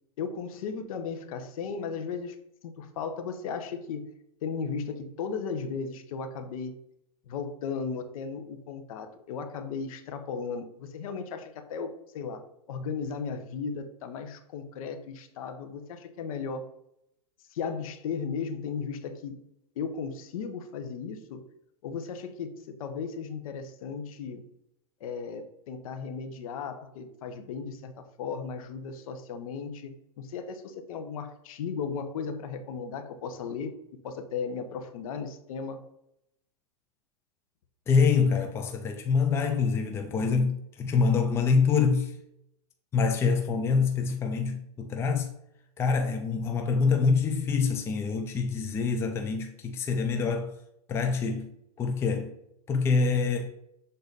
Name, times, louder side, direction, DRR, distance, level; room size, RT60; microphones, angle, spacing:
voice 1, 0.2-2.4 2.6-4.1 4.4-6.8 7.3-12.4 12.7-16.7 17.5-19.4 19.8-21.4 21.8-24.4 25.0-29.9 30.2-33.8 34.0-35.8, left 5 dB, 60° left, 1.0 m, -36 dB
voice 2, 37.9-42.1 42.9-45.3 45.8-50.5 50.9-51.5 51.8-52.3 52.7-53.5, left 5 dB, 10° left, 0.5 m, -25 dB
6.7 x 3.9 x 4.0 m
hypercardioid pair, 140°, 20 cm